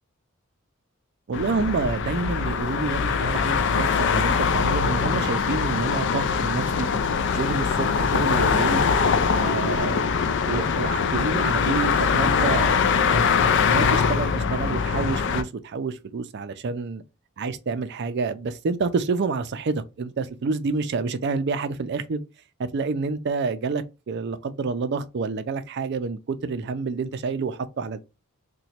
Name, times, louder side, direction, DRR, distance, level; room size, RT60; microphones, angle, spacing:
sound 1, 1.3-15.4, left 5 dB, 55° left, 0.4 m, -22 dB
voice 1, 1.3-6.9 7.3-8.9 9.3-10.0 10.5-13.3 13.6-17.0 17.4-22.2 22.6-28.0, right 4 dB, 50° right, 0.4 m, -28 dB
2.9 x 2.2 x 4.2 m
head